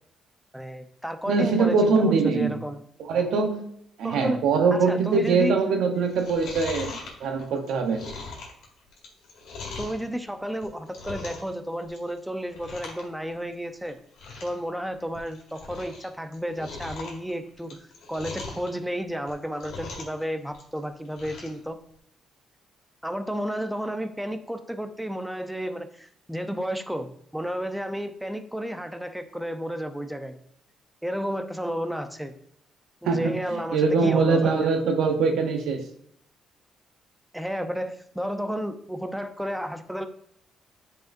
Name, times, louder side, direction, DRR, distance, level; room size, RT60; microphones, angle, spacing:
voice 1, 0.5-2.8 4.0-4.4 4.7-5.6 9.8-14.0 14.4-21.8 23.0-30.4 31.0-32.3 33.0-34.8 37.3-40.1, equal, 5° right, 8 dB, 0.7 m, -32 dB
voice 2, 1.3-2.6 3.1-3.6 4.0-6.9 7.2-8.0 33.1-33.4 33.7-35.8, right 4 dB, 80° right, 4 dB, 0.9 m, -22 dB
Chewing mastication, 6.0-10.0 10.5-11.5 11.8-12.2 12.5-13.0 13.3-13.4 13.8-13.9 14.1-14.6 15.0-16.0 16.3-18.7 19.2-20.2 20.5-21.6 21.9-22.0, left 4 dB, 80° left, 2.0 m, -40 dB
9.1 x 4.9 x 2.6 m, 0.71 s
cardioid pair, 90°, 0 cm